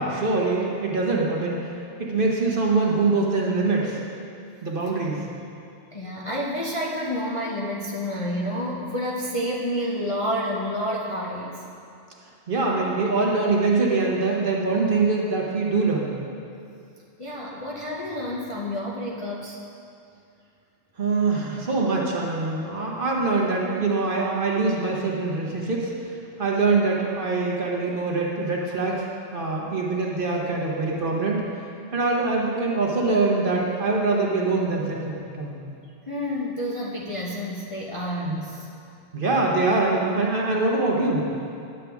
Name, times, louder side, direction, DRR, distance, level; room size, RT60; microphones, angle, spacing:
voice 1, 0.0-1.7 2.0-4.0 4.6-5.3 12.5-16.1 21.0-26.1 26.4-29.0 29.3-31.4 31.9-35.6 38.2-38.4 39.1-41.3, right 3 dB, 45° right, -2 dB, 1.1 m, -24 dB
voice 2, 5.9-11.6 17.2-19.6 36.1-38.7, equal, 30° left, -5 dB, 0.6 m, -29 dB
10.0 x 7.5 x 3.5 m, 2.5 s
omnidirectional pair, 1.3 m